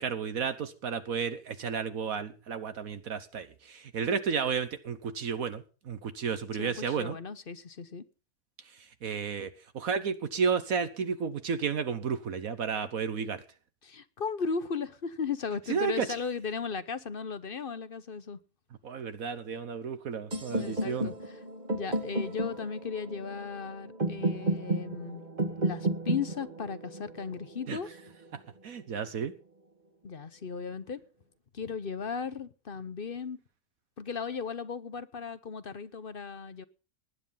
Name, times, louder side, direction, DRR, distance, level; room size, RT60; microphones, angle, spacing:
voice 1, 0.0-7.2 8.8-13.4 15.7-16.1 18.8-21.1 27.7-27.8 28.6-29.3, right 6 dB, 65° right, 1.4 m, -32 dB
voice 2, 6.6-8.0 13.8-18.4 20.5-21.4 21.7-25.2 25.6-27.9 30.0-31.0 31.5-33.4 34.0-36.6, left 5 dB, 45° left, 0.9 m, -36 dB
sound 1, 20.3-28.2, right 2 dB, 30° right, 1.8 m, -33 dB
19.0 x 9.9 x 5.6 m
omnidirectional pair, 1.6 m